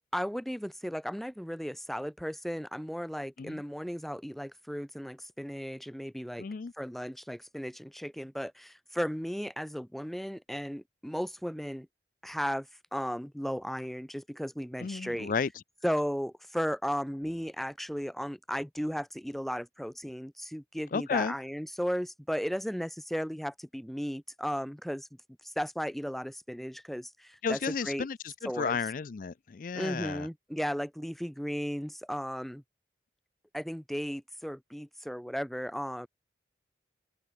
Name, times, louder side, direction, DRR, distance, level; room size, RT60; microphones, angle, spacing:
voice 1, 0.0-6.4 6.8-11.9 12.2-15.3 15.8-25.1 25.4-28.1 28.4-28.8 29.7-32.6 33.5-36.1, equal, ahead, 0.8 m, -35 dB
voice 2, 6.4-6.7 14.8-15.5 20.9-21.3 27.4-30.3, left 5 dB, 45° left, 0.4 m, -33 dB
head